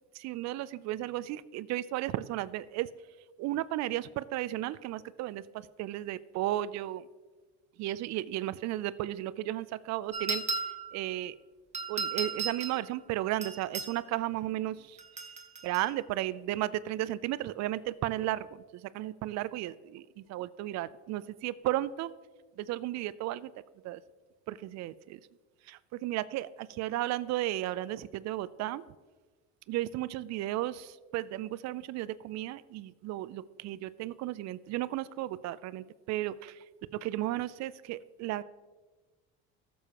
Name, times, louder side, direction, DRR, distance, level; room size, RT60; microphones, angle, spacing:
voice 1, 0.1-2.9 3.4-7.0 7.8-10.4 10.9-11.3 11.9-15.0 15.6-22.1 22.6-23.5 23.8-24.0 24.5-25.2 25.7-28.9 29.7-36.6 36.9-38.4, right 15 dB, 55° right, 17 dB, 0.4 m, -34 dB
sound 1, 10.1-11.0 11.7-12.8 13.4-13.9 15.0-15.9, right 4 dB, 20° right, 1.2 m, -35 dB
14.0 x 7.0 x 2.9 m, 1.3 s
supercardioid pair, 85°, 33 cm